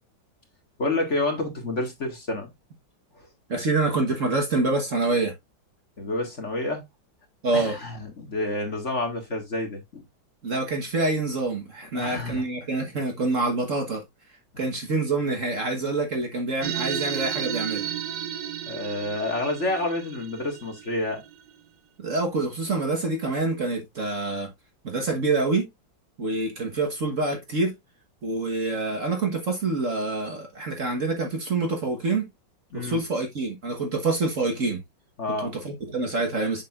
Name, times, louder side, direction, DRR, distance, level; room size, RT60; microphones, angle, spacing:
voice 1, 0.8-2.5 6.0-6.8 7.5-10.0 11.9-12.4 18.7-21.2 32.7-33.0 35.2-35.5, left 2 dB, 35° left, 2.2 m, -29 dB
voice 2, 3.5-5.3 7.4-7.7 10.4-14.0 14.6-17.9 22.0-24.5 24.8-25.7 26.2-27.7 28.2-32.2 32.7-34.8 35.4-36.6, right 3 dB, 45° right, 1.5 m, -26 dB
sound 1, 16.6-21.5, right 9 dB, 70° right, 1.4 m, -33 dB
7.8 x 6.4 x 2.4 m
omnidirectional pair, 2.1 m